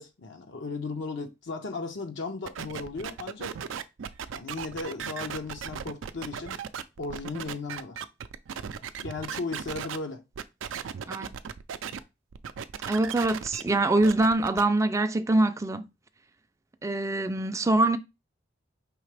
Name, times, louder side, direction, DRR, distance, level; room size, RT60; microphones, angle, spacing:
voice 1, 0.0-3.6 4.3-6.6 7.0-8.0 9.0-10.2, left 3 dB, 65° left, 0.7 m, -36 dB
sound 1, 2.4-10.0 10.3-12.0 12.3-14.6, right 7 dB, 85° right, 0.4 m, -37 dB
voice 2, 12.9-15.8 16.8-18.0, right 2 dB, 15° right, 0.4 m, -24 dB
4.8 x 3.2 x 3.3 m
head